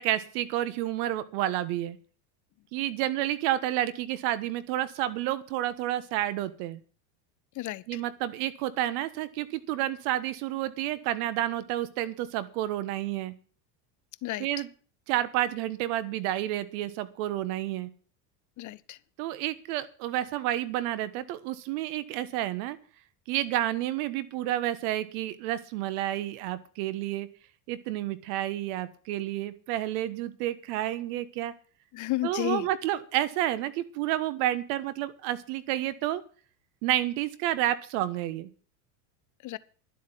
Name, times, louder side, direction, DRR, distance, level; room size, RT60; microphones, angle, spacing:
voice 1, 0.0-2.0 2.7-6.8 7.9-13.3 14.4-14.7 15.1-17.9 19.2-22.8 23.3-27.3 27.7-31.5 32.2-36.2 36.8-38.5, right 13 dB, 65° right, 1.5 m, -30 dB
voice 2, 7.6-8.0 14.2-14.5 18.6-19.0 31.9-32.7 39.4-39.6, left 16 dB, 40° left, 0.6 m, -32 dB
11.5 x 8.1 x 7.5 m
supercardioid pair, 105°, 49 cm